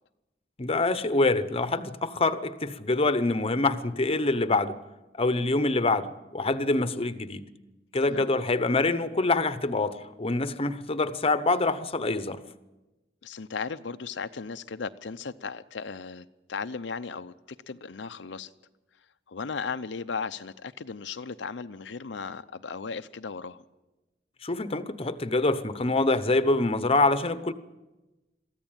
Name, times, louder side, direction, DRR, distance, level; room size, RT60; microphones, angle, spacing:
voice 1, 0.6-4.8 5.2-7.4 7.9-12.4 24.4-27.5, left 2 dB, 35° left, 0.9 m, -25 dB
voice 2, 13.2-17.3 17.7-18.5 19.3-23.6, left 5 dB, 85° left, 0.7 m, -36 dB
22.5 x 14.5 x 8.9 m
head